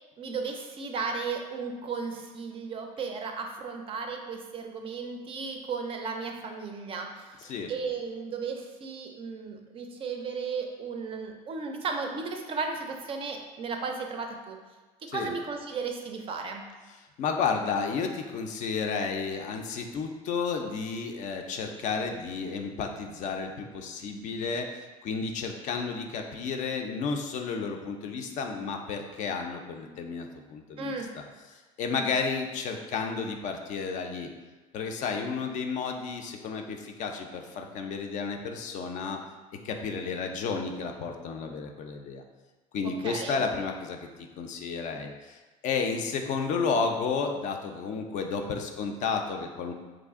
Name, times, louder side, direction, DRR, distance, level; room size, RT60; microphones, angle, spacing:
voice 1, 0.2-14.6 15.1-16.6 30.8-31.1 42.8-43.4, right 4 dB, 35° right, 3 dB, 0.4 m, -35 dB
voice 2, 17.2-30.9 31.5-34.3 34.7-39.2 39.6-42.2 42.7-49.7, left 5 dB, 50° left, 4 dB, 0.4 m, -32 dB
3.1 x 2.5 x 3.5 m, 1.2 s
cardioid pair, 120°, 16 cm